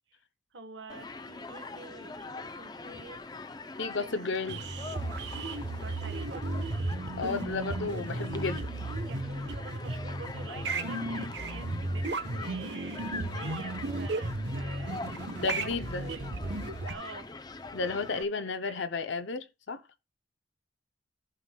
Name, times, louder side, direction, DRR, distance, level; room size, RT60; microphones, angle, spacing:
voice 1, 0.5-3.2 4.0-4.5 5.7-6.4 8.8-15.2 15.5-16.3 16.8-17.3 18.0-18.9, right 4 dB, 80° right, 1.3 m, -48 dB
Human group actions, 0.9-18.2, left 3 dB, 20° left, 0.5 m, -43 dB
voice 2, 3.8-4.6 7.2-8.7 15.4-16.1 17.7-19.8, left 4 dB, 70° left, 0.6 m, -33 dB
sound 1, 4.5-16.9, right 2 dB, 65° right, 1.0 m, -34 dB
14.5 x 5.8 x 2.3 m
head